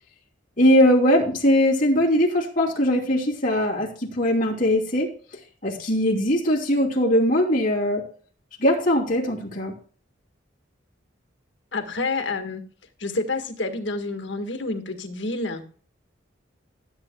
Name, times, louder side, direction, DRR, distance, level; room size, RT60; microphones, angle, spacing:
voice 1, 0.6-5.1 5.6-8.0 8.6-9.7, equal, 40° left, -2 dB, 3.1 m, -20 dB
voice 2, 11.7-12.6 13.0-15.6, left 3 dB, 70° left, 6 dB, 1.7 m, -28 dB
15.0 x 8.5 x 2.3 m, 0.43 s
head